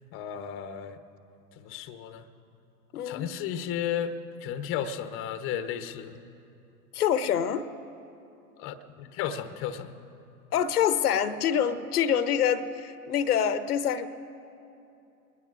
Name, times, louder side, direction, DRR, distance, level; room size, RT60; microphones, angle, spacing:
voice 1, 0.1-1.0 1.5-2.3 2.9-4.2 4.4-6.2 8.6-9.9, left 9 dB, 30° left, 10 dB, 0.7 m, -34 dB
voice 2, 2.9-3.3 6.9-7.7 10.5-14.1, left 8 dB, 75° left, 13 dB, 0.8 m, -26 dB
22.0 x 20.5 x 2.5 m, 2.7 s
hypercardioid pair, 105°, 46 cm